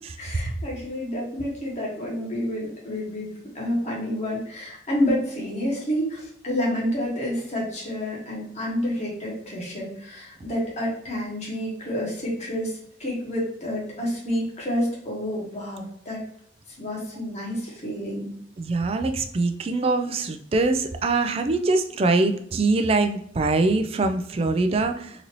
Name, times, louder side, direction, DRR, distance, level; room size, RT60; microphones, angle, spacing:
voice 1, 0.2-16.2 16.8-18.3, equal, 40° left, -4 dB, 1.3 m, -29 dB
voice 2, 18.6-25.3, right 3 dB, 35° right, 7 dB, 0.3 m, -23 dB
3.9 x 2.7 x 3.0 m, 0.66 s
head